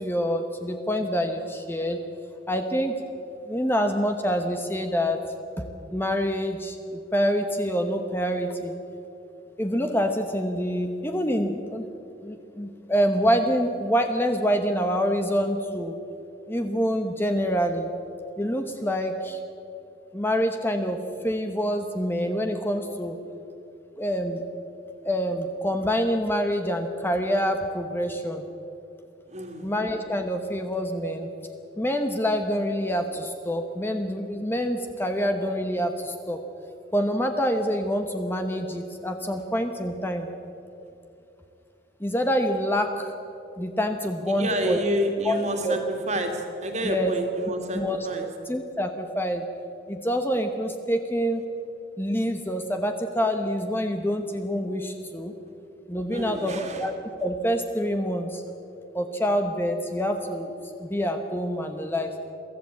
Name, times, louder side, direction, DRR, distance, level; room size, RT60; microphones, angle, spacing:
voice 1, 0.0-2.0 2.5-3.1 3.5-5.2 5.6-5.7 5.9-8.7 9.6-11.9 12.2-16.0 16.5-17.9 18.4-19.4 20.1-21.0 21.2-23.2 24.0-24.4 25.0-28.4 29.6-31.3 31.8-36.4 36.9-40.3 42.0-43.1 43.6-44.8 45.2-45.4 45.6-45.8 46.8-47.1 47.7-48.1 48.5-49.4 49.9-51.4 52.0-55.3 55.9-58.4 58.9-60.5 60.8-62.1, equal, 10° left, 5 dB, 1.0 m, -26 dB
voice 2, 29.3-29.7 44.3-48.3 56.1-56.9, right 1 dB, 40° right, 4 dB, 2.5 m, -29 dB
23.0 x 14.5 x 8.5 m, 2.8 s
head